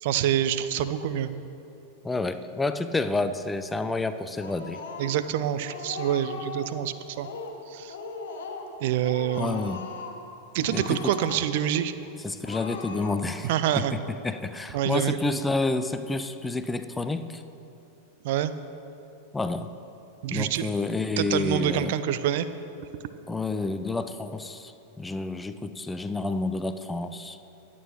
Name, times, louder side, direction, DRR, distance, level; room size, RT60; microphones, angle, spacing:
voice 1, 0.0-1.3 5.0-7.3 7.7-8.0 8.8-9.7 10.5-11.9 13.4-13.9 14.7-15.4 18.2-18.5 20.2-20.7 21.2-22.5, right 11 dB, 50° right, 12 dB, 0.5 m, -26 dB
voice 2, 2.0-4.8 9.4-9.8 10.7-11.2 12.2-13.5 13.9-17.4 19.3-19.7 20.3-21.9 23.3-24.7 25.0-27.4, left 3 dB, 10° left, 10 dB, 0.5 m, -29 dB
Speech, 4.4-5.3 5.6-6.8 7.1-7.6 7.9-8.7 9.0-10.2 10.6-11.7 12.0-12.1 12.4-13.5, left 4 dB, 60° left, 1.3 m, -39 dB
21.0 x 8.5 x 3.0 m, 2.8 s
figure-of-eight pair, 90°, 0 cm